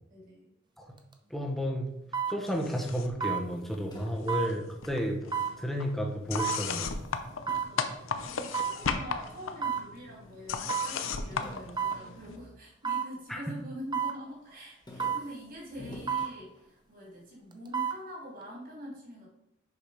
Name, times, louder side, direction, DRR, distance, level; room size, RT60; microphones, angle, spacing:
voice 1, 0.1-0.5 7.5-7.9 8.2-19.3, equal, 45° right, -3 dB, 2.8 m, -45 dB
sound 1, 1.0-1.1 2.1-2.4 3.2-3.5 4.3-4.5 5.3-5.6 6.4-6.6 7.5-7.7 8.5-8.8 9.6-9.9 10.7-11.0 11.8-12.0 12.8-13.1 13.9-14.2 15.0-15.3 16.1-16.3 17.5-18.0 18.4-18.5, right 7 dB, 25° right, 0.7 m, -30 dB
voice 2, 1.3-1.9 2.3-7.0 13.3-13.4, equal, ahead, 1 dB, 1.0 m, -32 dB
sound 2, 2.5-3.3 3.5-4.6 4.8-12.4, left 5 dB, 90° left, 0.7 m, -36 dB
sound 3, 3.4-5.9 6.3-8.8 9.4-10.1 10.3-10.4 10.7-13.3 13.7-14.1 14.5-17.0, left 1 dB, 20° left, 1.1 m, -51 dB
6.7 x 4.7 x 4.9 m, 0.81 s
head